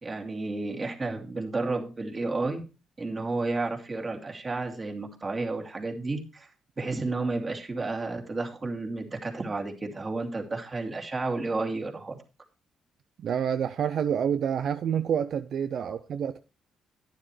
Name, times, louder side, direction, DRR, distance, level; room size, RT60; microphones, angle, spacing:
voice 1, 0.0-2.6 3.0-6.5 6.8-12.2 15.8-15.9, right 3 dB, 30° right, 2.4 m, -32 dB
voice 2, 13.2-16.4, right 8 dB, 65° right, 0.5 m, -28 dB
11.5 x 9.9 x 3.2 m
cardioid pair, 90°, 0 cm